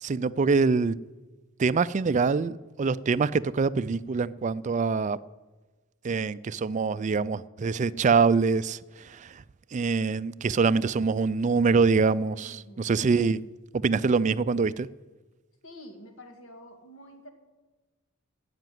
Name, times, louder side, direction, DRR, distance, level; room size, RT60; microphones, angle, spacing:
voice 1, 0.0-0.9 1.6-5.2 6.0-9.4 9.7-13.4 13.7-14.9, right 4 dB, 35° right, 0.3 m, -24 dB
voice 2, 12.4-12.9 15.6-17.3, equal, 70° left, 2.0 m, -48 dB
17.0 x 6.0 x 9.3 m
head